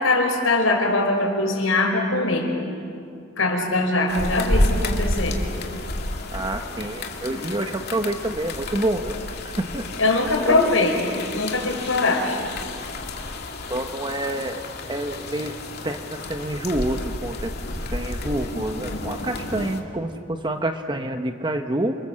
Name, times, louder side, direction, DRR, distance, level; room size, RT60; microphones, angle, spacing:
voice 1, 0.0-2.5 3.4-5.4 10.0-10.9 11.3-12.4 18.5-18.6, left 2 dB, 85° left, 2 dB, 5.1 m, -21 dB
sound 1, 4.1-19.8, left 1 dB, 55° left, 2.5 m, -30 dB
voice 2, 6.3-9.2 9.4-10.2 10.5-10.7 13.7-15.6 15.8-17.5 17.9-22.0, right 1 dB, 25° right, 6 dB, 1.0 m, -28 dB
29.0 x 26.0 x 7.6 m, 2.4 s
head